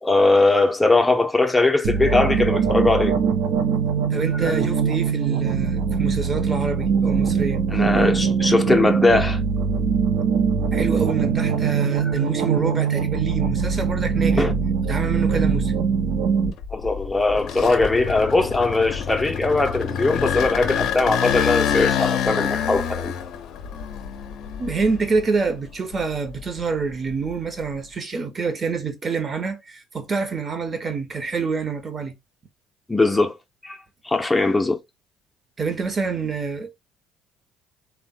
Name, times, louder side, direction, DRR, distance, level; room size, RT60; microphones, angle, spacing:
voice 1, 0.0-3.2 4.4-4.5 7.7-9.4 12.0-12.1 14.4-14.5 16.7-23.1 32.9-33.3 33.6-33.8 34.0-34.8, left 2 dB, 15° left, 0.5 m, -20 dB
sound 1, 1.8-16.5, right 6 dB, 65° right, 0.6 m, -22 dB
voice 2, 4.1-7.6 10.7-14.5 14.9-15.7 24.6-32.2 35.6-36.8, right 5 dB, 35° right, 0.8 m, -27 dB
sound 2, 16.4-25.5 25.9-27.8, left 8 dB, 65° left, 0.5 m, -27 dB
3.2 x 2.1 x 2.6 m
hypercardioid pair, 60°, 0 cm